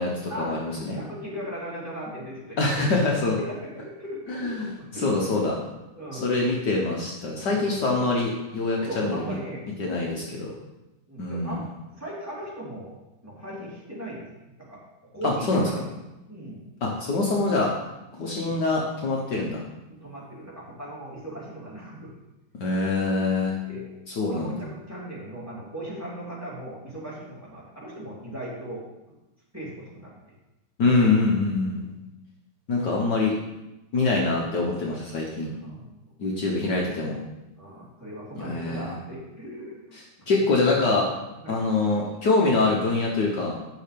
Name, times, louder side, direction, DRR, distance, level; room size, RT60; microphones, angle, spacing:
voice 1, 0.0-1.0 2.6-3.4 4.3-4.7 4.9-5.5 6.1-9.3 9.8-10.5 11.2-11.6 15.2-15.7 16.8-17.7 18.1-19.6 22.6-23.6 24.2-24.5 30.8-31.8 32.7-33.3 33.9-35.5 36.2-37.2 38.4-38.9 40.3-41.1 41.5-43.6, left 3 dB, 60° left, -2 dB, 1.7 m, -24 dB
voice 2, 0.9-3.0 3.4-5.4 5.9-6.3 7.4-7.8 8.8-10.1 11.1-11.6 11.9-12.9 13.2-14.2 14.6-14.8 15.1-15.8 16.3-16.7 18.4-18.6 19.3-19.5 19.9-22.1 23.6-23.8 24.1-28.8 29.5-30.1 31.7-31.8 35.6-35.8 36.5-36.8 37.6-40.0 40.4-41.0 41.4-41.6, right 1 dB, 5° right, -7 dB, 3.0 m, -38 dB
9.8 x 5.7 x 5.2 m, 0.97 s
omnidirectional pair, 2.2 m